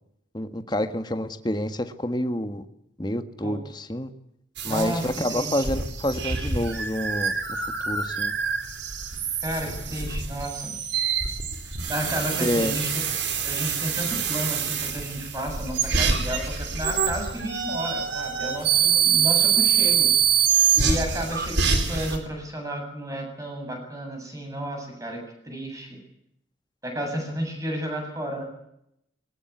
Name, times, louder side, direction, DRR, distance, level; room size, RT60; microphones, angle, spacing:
voice 1, 0.3-2.6 3.0-4.1 4.6-7.3 7.9-8.3 12.4-12.7, left 1 dB, 25° left, 8 dB, 1.6 m, -28 dB
voice 2, 4.6-5.7 9.4-10.8 11.7-13.0 13.4-20.1 20.7-25.2 25.4-26.0 26.8-28.4, equal, 20° right, 3 dB, 7.8 m, -32 dB
sound 1, 4.6-22.2, right 7 dB, 75° right, 4.2 m, -25 dB
22.0 x 19.5 x 9.6 m, 0.78 s
head